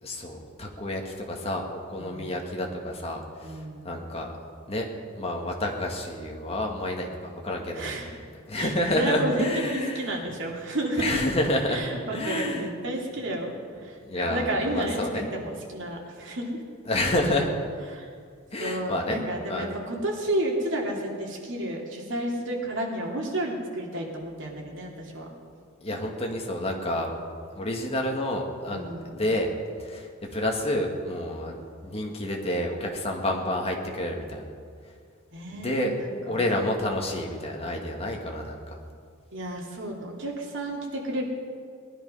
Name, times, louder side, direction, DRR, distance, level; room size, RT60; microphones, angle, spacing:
voice 1, 0.0-3.6 3.8-4.3 4.7-4.9 5.1-7.9 8.5-10.2 11.0-11.8 12.1-12.7 14.0-15.3 16.9-17.5 18.5-19.2 19.5-19.7 25.8-27.2 27.5-29.5 29.8-34.4 35.5-35.9 36.3-38.8, left 1 dB, 30° left, 1 dB, 1.9 m, -29 dB
voice 2, 2.0-2.4 3.4-4.0 7.7-8.1 8.5-11.2 11.7-16.6 17.9-18.1 18.6-25.3 28.7-29.1 35.3-36.4 39.3-41.2, right 1 dB, 65° right, -1 dB, 2.7 m, -31 dB
19.5 x 11.0 x 5.6 m, 2.1 s
head